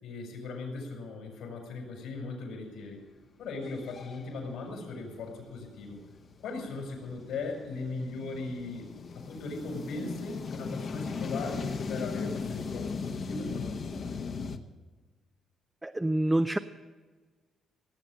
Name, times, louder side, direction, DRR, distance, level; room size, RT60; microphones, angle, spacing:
voice 1, 0.0-3.0 3.4-6.0 6.4-8.9 9.1-14.1, left 3 dB, 85° left, 2 dB, 5.1 m, -38 dB
sound 1, 3.0-3.1 3.5-14.6, left 5 dB, 50° left, 1.1 m, -38 dB
voice 2, 15.8-16.6, right 1 dB, 10° right, 7 dB, 0.5 m, -26 dB
17.5 x 8.1 x 7.6 m, 1.3 s
cardioid pair, 90°, 0 cm